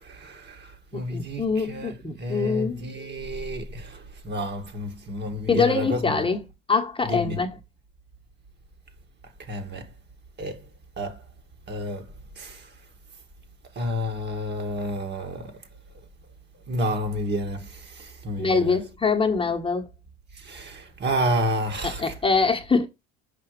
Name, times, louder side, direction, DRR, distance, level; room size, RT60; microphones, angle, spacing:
voice 1, 0.0-6.3 7.0-7.4 9.5-9.9 10.4-10.6 11.0-11.2 11.7-12.1 12.4-12.7 13.8-15.5 16.7-18.8 20.4-22.1, equal, 35° right, 2.0 m, -30 dB
voice 2, 0.9-2.8 5.5-6.4 6.7-7.5 18.4-19.9 21.8-22.9, left 4 dB, 20° left, 1.3 m, -24 dB
6.0 x 5.5 x 3.2 m
supercardioid pair, 85°, 29 cm